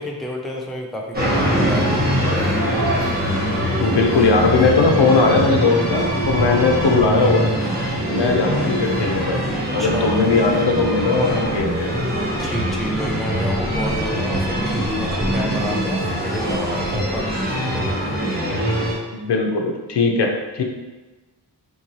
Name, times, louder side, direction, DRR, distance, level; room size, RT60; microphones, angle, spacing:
voice 1, 0.0-1.9 9.8-10.2 12.4-17.3 17.7-18.1, equal, ahead, -2 dB, 0.5 m, -30 dB
sound 1, 1.1-18.9, equal, 20° right, 1.0 m, -22 dB
voice 2, 3.8-7.5 8.1-9.4 9.7-12.0 19.1-20.6, left 3 dB, 75° left, 3 dB, 0.5 m, -19 dB
3.8 x 2.6 x 3.0 m, 1.2 s
wide cardioid pair, 55°, 42 cm